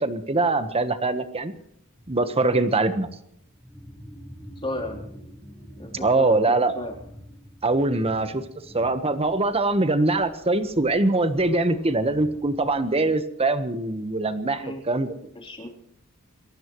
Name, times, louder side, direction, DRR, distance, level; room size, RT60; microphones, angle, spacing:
voice 1, 0.0-1.5 2.1-3.1 5.9-6.7 7.6-8.4 8.7-15.1, right 2 dB, 25° right, 10 dB, 1.2 m, -23 dB
sound 1, 1.5-1.6 1.9-2.3 3.2-13.2, equal, 5° left, 2.0 m, -47 dB
voice 2, 4.6-5.1 5.8-7.0 14.6-14.8 15.4-15.7, left 1 dB, 25° left, 1 dB, 3.5 m, -34 dB
27.5 x 15.5 x 3.1 m, 0.72 s
head